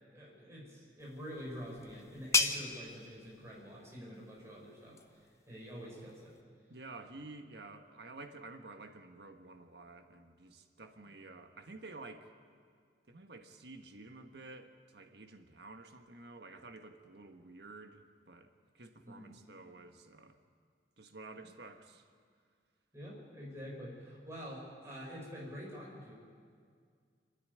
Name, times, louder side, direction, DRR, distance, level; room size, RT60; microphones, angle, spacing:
voice 1, 0.1-5.2 5.5-6.4 19.0-19.3 22.9-26.2, equal, 15° right, -4 dB, 5.5 m, -47 dB
sound 1, 1.0-6.4, left 4 dB, 15° left, 0.8 m, -38 dB
voice 2, 6.7-12.3 13.1-20.4 21.0-22.0, right 3 dB, 70° right, 6 dB, 1.4 m, -51 dB
27.0 x 10.0 x 9.5 m, 2.1 s
head